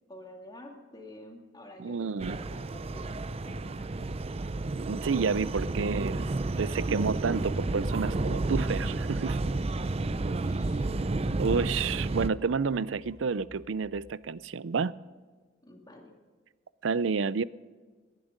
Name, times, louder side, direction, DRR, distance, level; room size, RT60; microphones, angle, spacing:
voice 1, 0.1-3.2 3.4-4.1 10.0-10.9 15.6-16.1, left 1 dB, 20° left, 1 dB, 2.4 m, -49 dB
voice 2, 1.8-2.4 4.8-6.2 6.6-9.4 11.4-14.9 16.8-17.4, right 5 dB, 85° right, 19 dB, 0.5 m, -30 dB
sound 1, 2.2-12.3, right 2 dB, 35° right, 0.5 m, -31 dB
sound 2, 7.3-14.2, left 1 dB, 5° right, 3.2 m, -55 dB
18.5 x 11.0 x 5.2 m, 1.4 s
head